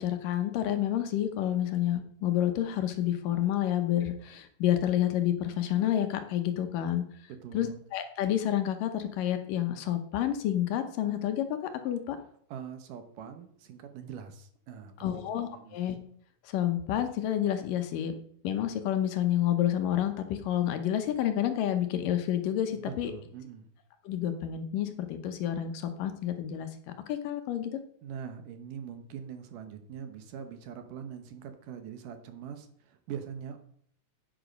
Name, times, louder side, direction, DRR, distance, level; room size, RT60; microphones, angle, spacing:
voice 1, 0.0-7.0 7.5-11.6 11.8-12.2 15.0-16.0 16.4-18.1 18.4-23.1 24.0-26.7 27.1-27.8, left 11 dB, 75° left, 8 dB, 2.4 m, -29 dB
voice 2, 7.3-7.8 12.5-15.8 22.7-23.6 28.0-33.6, right 7 dB, 70° right, 8 dB, 2.4 m, -43 dB
11.0 x 9.1 x 5.2 m, 0.63 s
omnidirectional pair, 4.2 m